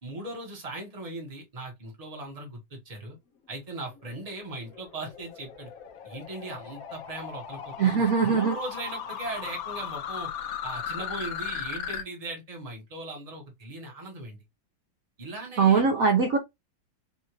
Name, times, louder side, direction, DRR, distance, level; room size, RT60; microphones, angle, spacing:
voice 1, 0.0-3.2 3.5-5.7 6.0-10.3 10.6-14.4 15.2-15.8, right 2 dB, 25° right, 1.1 m, -39 dB
sound 1, 4.0-12.0, left 8 dB, 60° left, 1.0 m, -37 dB
voice 2, 7.8-8.5 15.6-16.4, right 5 dB, 60° right, 1.0 m, -21 dB
4.2 x 2.5 x 3.0 m
omnidirectional pair, 2.1 m